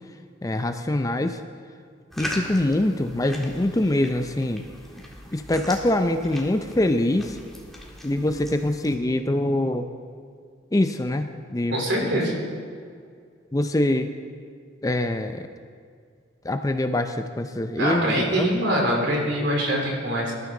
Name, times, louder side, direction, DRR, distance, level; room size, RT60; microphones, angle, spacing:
voice 1, 0.4-1.4 2.2-4.6 5.3-7.4 8.0-9.9 10.7-11.8 13.5-14.1 14.8-15.5 16.4-18.5, left 1 dB, 20° left, 7 dB, 0.5 m, -24 dB
sound 1, 2.1-9.0, equal, ahead, 1.6 m, -39 dB
voice 2, 11.7-12.4 17.8-20.3, right 1 dB, 70° right, -1 dB, 3.5 m, -24 dB
20.0 x 12.5 x 3.8 m, 2.1 s
head